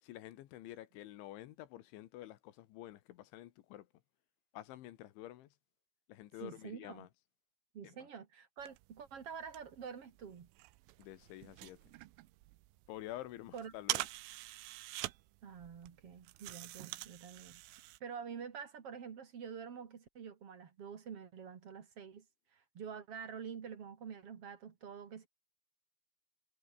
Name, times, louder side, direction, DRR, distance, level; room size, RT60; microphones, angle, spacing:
voice 1, 0.0-3.9 4.5-5.5 6.1-7.1 7.8-8.1 11.0-11.9 12.9-14.1, left 14 dB, 75° left, 3.5 m, -49 dB
voice 2, 6.4-7.1 7.7-10.5 13.5-13.7 15.4-17.6 18.0-22.2 22.5-25.3, right 7 dB, 50° right, 1.8 m, -47 dB
sound 1, 8.6-18.0, right 18 dB, 85° right, 3.4 m, -46 dB
omnidirectional pair, 5.8 m